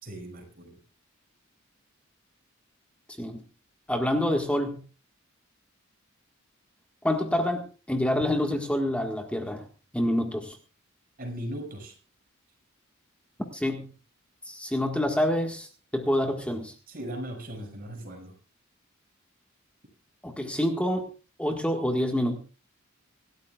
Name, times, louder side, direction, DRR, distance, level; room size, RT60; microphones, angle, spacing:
voice 1, 0.0-0.8 11.2-11.9 16.9-18.3, equal, 45° right, 2 dB, 6.0 m, -38 dB
voice 2, 3.9-4.8 7.0-9.7 9.9-10.6 13.5-13.8 14.4-15.7 15.9-16.7 20.2-21.1 21.4-22.4, left 1 dB, 5° left, 3 dB, 1.6 m, -27 dB
26.5 x 12.5 x 2.4 m, 0.35 s
head